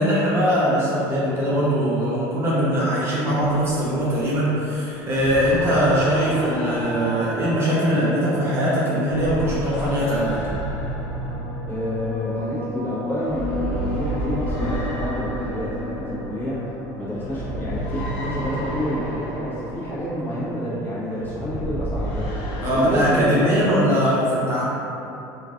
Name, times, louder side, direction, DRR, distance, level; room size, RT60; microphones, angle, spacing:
voice 1, 0.0-10.4 22.6-24.6, equal, 30° right, -7 dB, 0.6 m, -21 dB
sound 1, 3.4-8.7 9.0-23.3, equal, 70° left, 0.5 m, -32 dB
sound 2, 5.0-18.6, equal, 80° right, 0.5 m, -34 dB
voice 2, 11.7-16.6 17.0-23.4, equal, 25° left, -10 dB, 1.1 m, -29 dB
3.1 x 2.5 x 2.4 m, 2.8 s
supercardioid pair, 125°, 9 cm